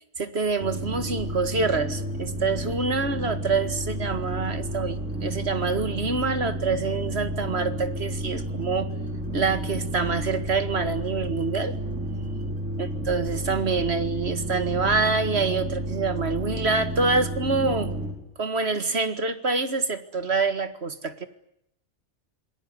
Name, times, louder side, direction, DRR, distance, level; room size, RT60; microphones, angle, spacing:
voice 1, 0.2-8.9 9.3-11.8 12.8-17.9 18.4-21.3, right 4 dB, 60° right, 11 dB, 2.1 m, -26 dB
sound 1, 0.6-18.1, right 1 dB, 85° right, 5.8 m, -31 dB
27.5 x 21.0 x 9.6 m, 0.75 s
omnidirectional pair, 1.2 m